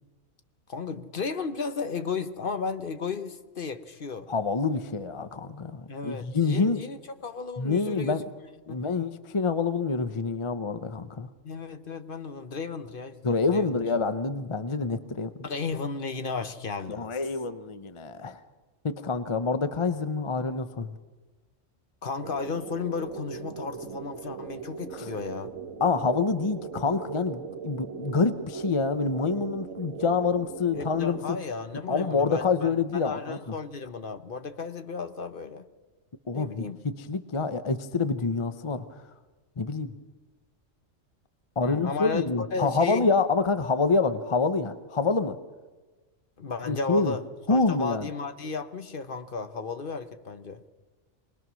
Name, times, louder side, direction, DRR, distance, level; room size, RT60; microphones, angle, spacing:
voice 1, 0.7-4.3 5.9-8.2 8.7-8.9 11.4-13.7 15.4-17.2 22.0-25.5 30.7-35.6 36.3-36.8 41.6-43.1 46.4-47.2 47.5-50.6, left 4 dB, 45° left, 1.0 m, -34 dB
voice 2, 4.3-6.8 7.6-8.2 8.7-11.3 13.2-15.3 16.9-18.4 18.8-21.0 24.9-25.1 25.8-31.4 31.9-33.5 36.3-38.9 39.6-39.9 41.6-45.4 46.7-47.2 47.5-48.1, left 4 dB, 30° left, 0.6 m, -27 dB
sound 1, 22.2-31.2, right 6 dB, 80° right, 1.5 m, -39 dB
24.0 x 20.0 x 6.2 m
omnidirectional pair, 1.3 m